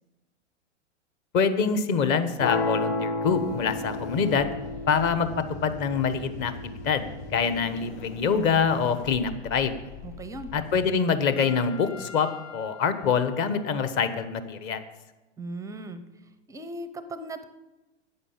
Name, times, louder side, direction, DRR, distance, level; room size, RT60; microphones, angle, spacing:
voice 1, 1.3-4.6 4.9-5.3 5.6-6.5 6.8-7.0 7.3-9.7 10.5-14.8, left 6 dB, 35° left, 10 dB, 1.2 m, -25 dB
sound 1, 2.4-8.4, left 2 dB, 55° left, 4.2 m, -33 dB
sound 2, 3.3-10.9, left 2 dB, 70° left, 5.6 m, -42 dB
voice 2, 10.0-10.5 15.4-16.0 16.5-17.4, right 2 dB, 10° right, 11 dB, 0.5 m, -37 dB
Trumpet, 11.3-14.0, left 6 dB, 90° left, 4.6 m, -46 dB
11.0 x 8.9 x 7.2 m, 1.1 s
hypercardioid pair, 125°, 36 cm